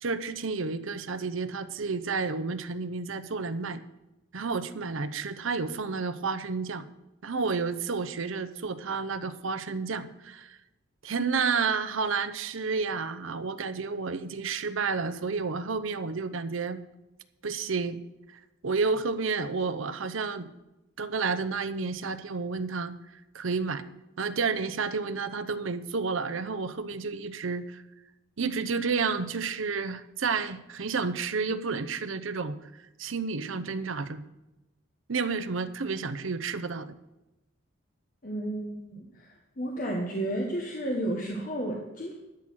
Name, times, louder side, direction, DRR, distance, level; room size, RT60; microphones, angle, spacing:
voice 1, 0.0-3.8 4.3-6.9 7.2-10.6 11.0-16.8 17.4-18.0 18.6-20.5 21.0-22.9 23.3-23.8 24.2-27.8 28.4-32.6 33.0-34.2 35.1-37.0, right 4 dB, 70° right, 12 dB, 0.7 m, -30 dB
voice 2, 38.2-42.1, right 1 dB, 40° left, 0 dB, 1.3 m, -32 dB
12.5 x 7.5 x 6.3 m, 0.98 s
head